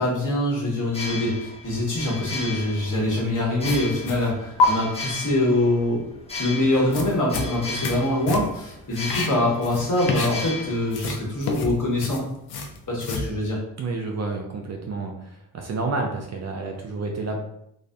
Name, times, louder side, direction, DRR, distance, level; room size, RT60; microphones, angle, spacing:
voice 1, 0.0-6.0 6.4-12.2 12.9-13.6, left 1 dB, 45° left, -3 dB, 1.3 m, -24 dB
sound 1, 0.8-11.6, left 3 dB, 15° left, 0.7 m, -36 dB
sound 2, 3.6-4.3 4.6-4.7 6.7-8.0 8.3-8.6 8.9-10.6 10.9-13.3, left 3 dB, 60° left, 0.6 m, -28 dB
voice 2, 13.8-17.4, right 3 dB, 40° right, 1 dB, 0.5 m, -30 dB
2.5 x 2.3 x 2.2 m, 0.76 s
supercardioid pair, 45°, 43 cm